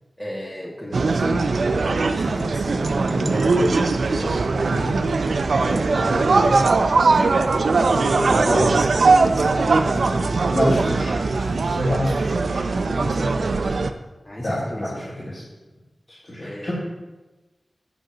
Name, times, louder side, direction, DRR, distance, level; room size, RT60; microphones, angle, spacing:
voice 1, 0.2-1.5 1.8-5.0 5.6-6.8 7.7-8.9 9.2-10.2 12.8-13.7 14.2-15.1 16.4-16.7, equal, 20° left, -4 dB, 1.7 m, -32 dB
sound 1, 0.9-13.9, right 3 dB, 85° right, 0.5 m, -20 dB
voice 2, 10.4-12.6 14.4-14.9 15.2-15.4 16.1-16.7, left 1 dB, 45° left, -9 dB, 2.9 m, -26 dB
8.2 x 6.6 x 5.0 m, 1.1 s
cardioid pair, 45°, 0 cm